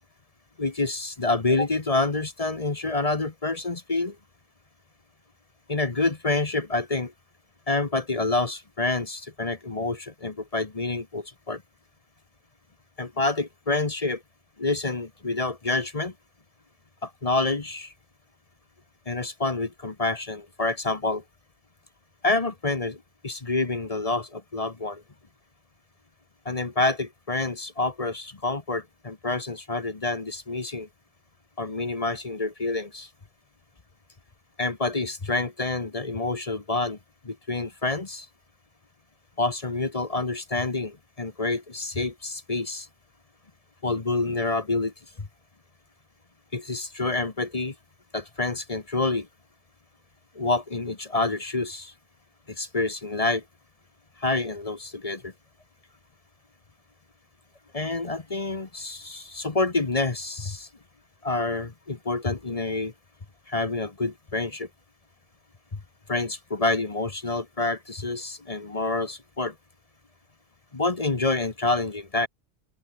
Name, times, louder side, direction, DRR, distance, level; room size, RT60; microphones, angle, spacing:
voice 1, 0.6-4.1 5.7-7.1 7.7-11.6 13.0-14.2 14.6-16.1 17.0-17.9 19.1-21.2 22.2-23.0 23.2-25.0 26.4-30.9 31.6-33.1 34.6-37.0 37.2-38.3 39.4-42.9 43.8-44.9 46.5-47.7 48.1-49.3 50.3-51.9 52.6-53.4 54.2-55.3 57.7-60.7 61.2-62.9 63.5-64.7 66.1-69.5 70.7-72.3, left 2 dB, 35° left, 1.3 m, -27 dB
open air
omnidirectional pair, 1.1 m